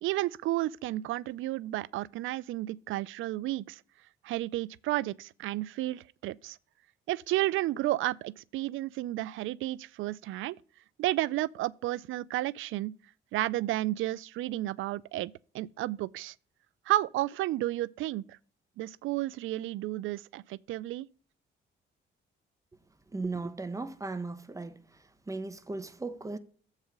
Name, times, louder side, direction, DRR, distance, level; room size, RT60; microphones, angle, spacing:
voice 1, 0.0-3.8 4.2-6.6 7.1-10.6 11.0-12.9 13.3-16.3 16.9-18.4 18.8-21.1, right 16 dB, 80° right, 0.4 m, -32 dB
voice 2, 23.1-24.8 25.3-26.4, right 3 dB, 15° right, 1.0 m, -36 dB
7.4 x 4.8 x 6.7 m
cardioid pair, 90°, 20 cm